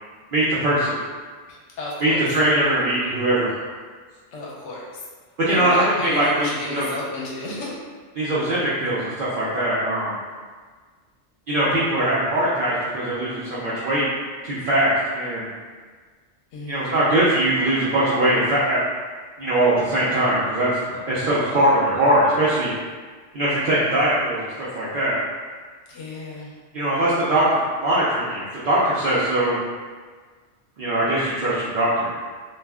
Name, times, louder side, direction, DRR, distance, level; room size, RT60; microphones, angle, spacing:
voice 1, 0.3-1.0 2.0-3.5 5.4-6.9 8.1-10.2 11.5-14.1 14.4-15.5 16.7-18.8 19.4-22.7 23.3-25.1 26.7-29.6 30.8-32.2, right 1 dB, 60° right, -9 dB, 0.6 m, -21 dB
voice 2, 1.5-2.2 4.3-4.9 5.5-7.8 16.5-17.0 25.9-26.5, left 2 dB, 80° left, -4 dB, 0.9 m, -32 dB
2.4 x 2.1 x 3.4 m, 1.5 s
omnidirectional pair, 1.2 m